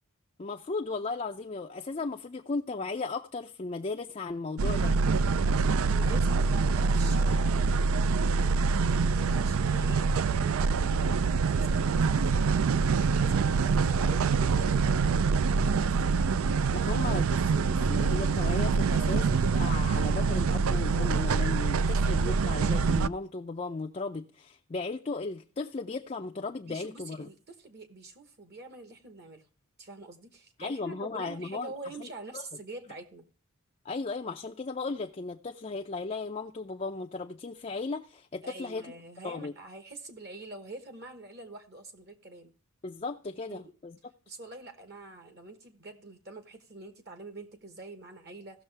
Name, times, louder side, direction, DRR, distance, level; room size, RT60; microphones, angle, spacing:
voice 1, 0.4-4.9 16.7-27.3 30.6-31.7 32.0-32.1 32.3-32.5 33.8-38.9 39.2-39.5 42.8-44.0, left 3 dB, 30° left, 0.4 m, -36 dB
sound 1, 4.6-23.1, right 4 dB, 70° right, 0.4 m, -25 dB
voice 2, 5.8-7.7 8.9-12.0 12.6-16.1 26.7-29.5 29.8-33.3 38.4-42.5 43.5-43.7 44.3-48.6, right 2 dB, 45° right, 1.1 m, -45 dB
16.5 x 6.5 x 3.3 m
head